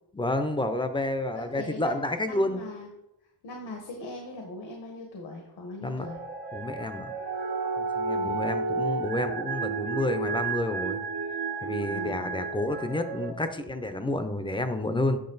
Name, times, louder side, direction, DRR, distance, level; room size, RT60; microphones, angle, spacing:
voice 1, 0.1-2.6 5.8-6.1 6.5-7.1 7.8-11.0 11.6-15.2, left 1 dB, 15° left, 9 dB, 0.5 m, -30 dB
voice 2, 1.3-2.9 3.4-6.2 8.1-8.4 11.9-12.4, left 2 dB, 85° left, 1 dB, 1.5 m, -40 dB
sound 1, 6.0-13.3, right 4 dB, 80° right, 1.1 m, -32 dB
8.7 x 6.2 x 3.9 m, 0.88 s
wide cardioid pair, 170°, 39 cm